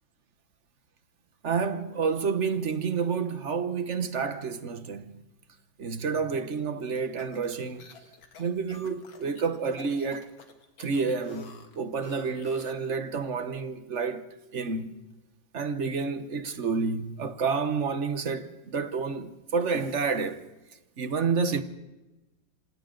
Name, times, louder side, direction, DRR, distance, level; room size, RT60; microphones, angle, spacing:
voice 1, 1.4-5.2 5.8-7.9 8.4-10.4 10.8-14.3 14.5-15.0 15.5-20.4 21.0-21.6, right 5 dB, 45° right, 1.2 m, -29 dB
sound 1, 7.0-12.9, left 4 dB, 90° left, 2.5 m, -49 dB
27.0 x 27.0 x 3.9 m
omnidirectional pair, 2.1 m